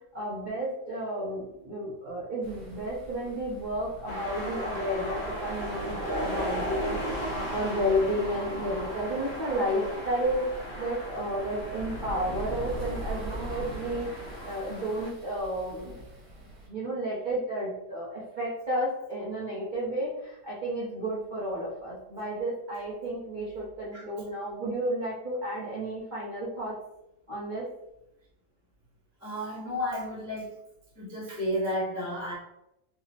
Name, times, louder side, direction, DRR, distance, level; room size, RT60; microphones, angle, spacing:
voice 1, 0.1-15.9 16.7-26.7 27.3-27.7, equal, 50° right, -8 dB, 0.5 m, -32 dB
sound 1, 2.4-16.7, right 1 dB, 70° right, 1.7 m, -41 dB
sound 2, 4.1-15.1, equal, 55° left, 0.7 m, -37 dB
voice 2, 29.2-30.6 31.0-32.3, equal, 20° left, -8 dB, 0.4 m, -32 dB
4.6 x 2.1 x 2.8 m, 0.87 s
omnidirectional pair, 1.9 m